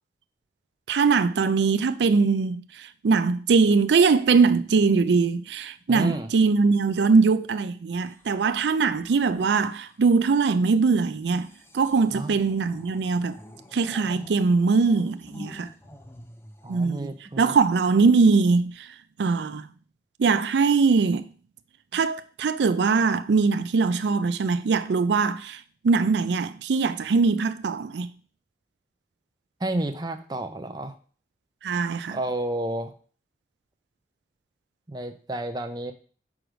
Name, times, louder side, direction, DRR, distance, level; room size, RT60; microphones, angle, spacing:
voice 1, 0.9-13.4 13.7-15.7 16.7-17.1 17.4-19.7 20.2-21.3 21.9-28.1 31.6-32.2, right 4 dB, 80° right, 0.4 m, -22 dB
voice 2, 5.9-6.3 12.1-12.4 16.6-17.5 29.6-30.9 32.1-32.9 34.9-35.9, right 1 dB, 25° right, 0.7 m, -31 dB
sound 1, 8.0-10.1 11.1-17.6 18.5-18.8, left 1 dB, 15° left, 0.6 m, -48 dB
6.2 x 4.8 x 5.1 m
head